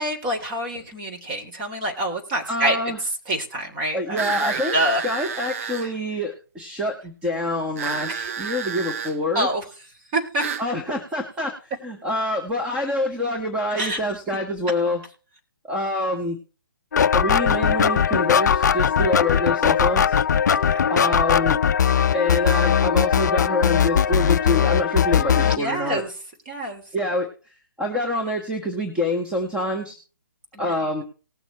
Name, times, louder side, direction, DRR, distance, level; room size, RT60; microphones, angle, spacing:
voice 1, 0.0-2.8 3.3-5.0 5.6-5.9 8.1-8.3 9.3-9.6 10.1-10.4 13.7-14.0 20.4-20.9 25.1-26.1 26.5-26.8 30.5-30.7, right 1 dB, 30° right, 2 dB, 3.3 m, -27 dB
voice 2, 2.5-3.0 3.9-4.8 5.0-9.5 10.6-15.0 15.7-16.4 17.1-20.2 20.9-21.6 22.1-26.0 26.9-30.0 30.6-31.0, left 1 dB, 10° right, 1 dB, 1.5 m, -26 dB
sound 1, 4.2-5.9 7.8-9.2 10.4-10.7, right 7 dB, 45° right, 0.9 m, -30 dB
sound 2, 16.9-25.6, left 8 dB, 60° left, 0.4 m, -19 dB
19.5 x 7.0 x 3.1 m, 0.36 s
figure-of-eight pair, 140°, 11 cm